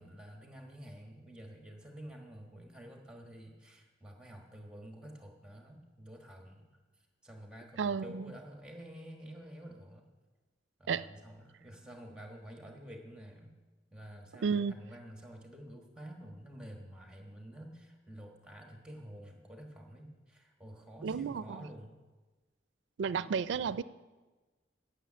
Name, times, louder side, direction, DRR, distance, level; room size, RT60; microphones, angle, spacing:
voice 1, 0.0-10.1 10.8-13.6 13.9-22.0, equal, 5° right, 2 dB, 1.3 m, -50 dB
voice 2, 7.8-8.3 10.9-11.1 14.4-14.8 21.0-21.6 23.0-23.8, right 6 dB, 80° right, 17 dB, 0.4 m, -32 dB
9.1 x 6.7 x 8.7 m, 1.2 s
head